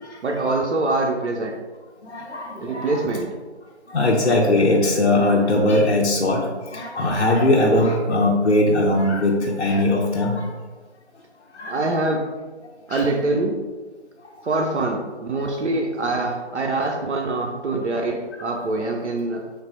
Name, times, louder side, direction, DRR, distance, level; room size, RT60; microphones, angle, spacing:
voice 1, 0.2-1.6 2.6-3.3 11.7-12.3 12.9-13.6 14.4-19.5, right 2 dB, 80° right, 1 dB, 0.5 m, -24 dB
voice 2, 2.0-3.1 3.9-10.5 11.5-11.8 12.9-13.0, left 1 dB, 65° left, -1 dB, 0.5 m, -20 dB
3.3 x 2.0 x 3.9 m, 1.3 s
figure-of-eight pair, 175°, 34 cm